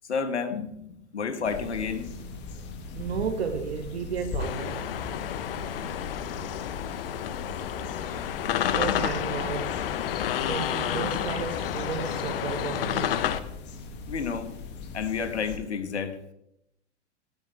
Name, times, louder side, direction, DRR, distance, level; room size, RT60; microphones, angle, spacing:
voice 1, 0.1-0.7 1.1-2.1 14.1-14.5 14.9-16.2, left 6 dB, 70° left, 1.7 m, -30 dB
sound 1, 1.4-15.6, left 3 dB, 30° left, 2.1 m, -40 dB
voice 2, 2.9-4.9 8.7-9.8 10.4-13.2, right 6 dB, 60° right, 1.6 m, -33 dB
sound 2, 4.4-13.4, left 10 dB, 50° left, 1.1 m, -30 dB
18.0 x 14.0 x 3.5 m
figure-of-eight pair, 100°, 35 cm